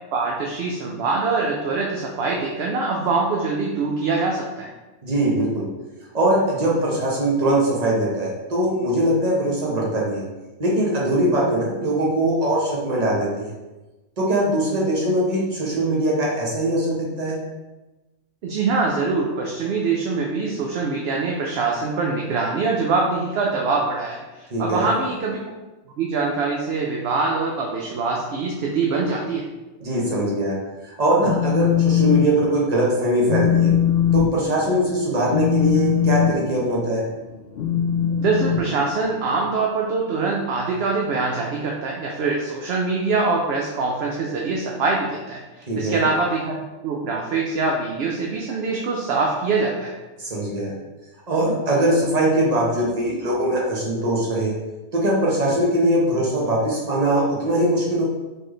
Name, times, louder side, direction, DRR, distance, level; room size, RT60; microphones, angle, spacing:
voice 1, 0.1-4.7 18.4-25.4 26.0-29.5 38.2-49.9, right 4 dB, 65° right, -1 dB, 0.8 m, -24 dB
voice 2, 5.0-5.7 6.1-10.2 10.6-13.5 14.2-17.4 24.5-24.9 29.8-30.6 30.8-33.7 34.1-37.0 45.7-46.1 50.2-50.7 51.3-54.5 54.9-58.0, right 1 dB, 35° right, -4 dB, 1.1 m, -21 dB
Telephone, 31.1-32.3 32.6-32.9 33.2-39.4, left 9 dB, 65° left, 0.8 m, -21 dB
4.3 x 3.1 x 3.1 m, 1.1 s
omnidirectional pair, 1.2 m